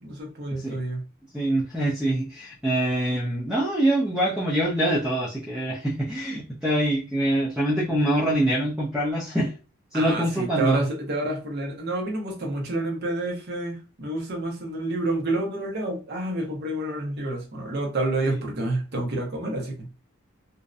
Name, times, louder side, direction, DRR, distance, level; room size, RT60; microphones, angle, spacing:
voice 1, 0.0-1.0 9.9-19.9, right 2 dB, 50° right, 1 dB, 0.7 m, -29 dB
voice 2, 1.3-9.5 9.9-10.8, right 1 dB, 5° right, -5 dB, 0.4 m, -24 dB
2.6 x 2.0 x 2.4 m, 0.34 s
head